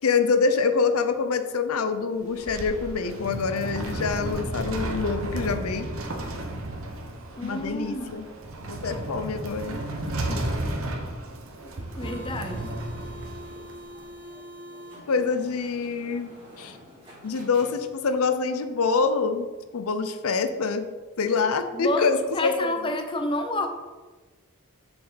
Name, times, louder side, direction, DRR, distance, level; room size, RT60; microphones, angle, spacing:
voice 1, 0.0-5.9 7.4-8.3 8.7-9.8 15.1-16.3 16.6-16.8 17.2-19.5 19.7-20.9 21.2-22.7, left 4 dB, 90° left, 10 dB, 0.6 m, -25 dB
sound 1, 2.1-14.0, right 1 dB, 70° right, 1.1 m, -33 dB
voice 2, 7.4-8.3 10.3-10.5 11.6-11.7 12.0-12.8 21.7-23.7, left 2 dB, 25° left, 5 dB, 0.6 m, -30 dB
sound 2, 11.8-18.2, equal, 25° right, 2.7 m, -44 dB
7.0 x 6.9 x 4.0 m, 1.3 s
head